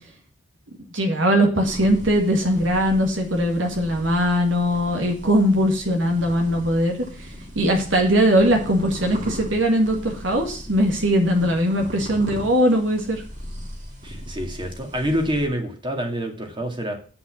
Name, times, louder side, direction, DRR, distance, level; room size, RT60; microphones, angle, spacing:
voice 1, 0.9-6.9 7.6-13.2, equal, 70° right, 3 dB, 1.9 m, -20 dB
sound 1, 1.6-15.5, equal, 40° right, 2.5 m, -39 dB
voice 2, 14.0-16.9, equal, 25° right, 3 dB, 2.1 m, -27 dB
8.2 x 5.8 x 7.5 m, 0.40 s
head